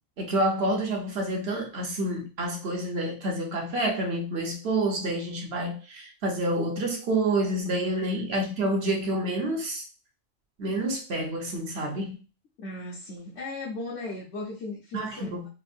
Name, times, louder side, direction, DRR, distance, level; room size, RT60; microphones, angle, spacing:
voice 1, 0.2-9.8 10.6-12.2 14.9-15.5, right 1 dB, 55° right, 1.0 m, -28 dB
voice 2, 12.6-15.5, left 2 dB, 60° left, 1.0 m, -37 dB
4.4 x 2.0 x 2.5 m
omnidirectional pair, 1.4 m